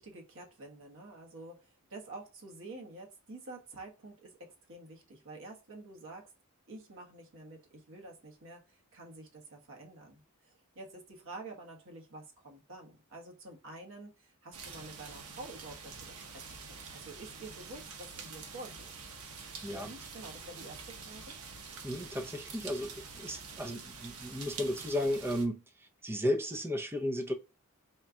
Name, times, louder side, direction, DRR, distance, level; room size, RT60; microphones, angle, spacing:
voice 1, 0.0-6.3 6.7-19.1 19.7-21.4, right 2 dB, 60° right, 1.2 m, -49 dB
sound 1, 14.5-25.5, right 5 dB, 80° right, 0.9 m, -46 dB
voice 2, 21.8-27.3, left 1 dB, 10° right, 0.6 m, -34 dB
4.3 x 2.3 x 3.7 m
head